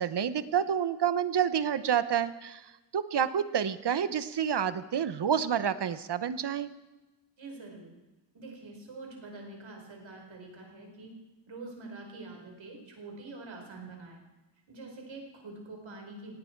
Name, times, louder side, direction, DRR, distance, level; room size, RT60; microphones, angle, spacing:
voice 1, 0.0-6.7, right 8 dB, 60° right, 14 dB, 0.9 m, -29 dB
voice 2, 7.4-7.9 8.3-11.1 11.5-14.2 14.7-16.3, right 3 dB, 80° right, 1 dB, 4.9 m, -45 dB
18.0 x 17.5 x 4.6 m, 1.1 s
wide cardioid pair, 135°, 46 cm